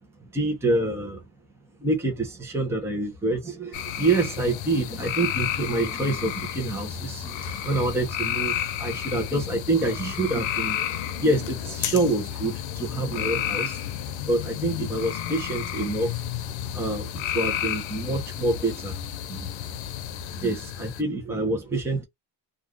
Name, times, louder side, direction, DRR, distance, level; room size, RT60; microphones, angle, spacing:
voice 1, 0.3-1.2 1.8-10.8 11.2-13.8 14.3-16.2 16.7-19.0 19.3-19.5 20.3-22.0, right 2 dB, 5° right, 0.6 m, -27 dB
sound 1, 3.7-21.0, left 10 dB, 85° left, 0.7 m, -31 dB
2.4 x 2.4 x 3.3 m
cardioid pair, 170°, 45 cm